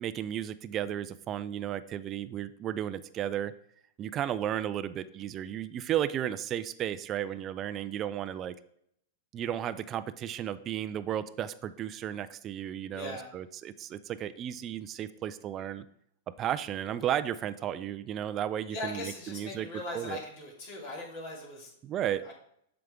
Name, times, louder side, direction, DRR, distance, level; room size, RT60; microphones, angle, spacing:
voice 1, 0.0-3.5 4.0-8.5 9.3-15.8 16.3-19.7 19.9-20.2 21.8-22.2, right 10 dB, 30° right, 13 dB, 0.4 m, -34 dB
voice 2, 12.9-13.3 18.7-21.7 22.1-22.3, left 2 dB, 55° left, -2 dB, 2.7 m, -40 dB
7.5 x 5.8 x 3.7 m, 0.71 s
hypercardioid pair, 105°, 0 cm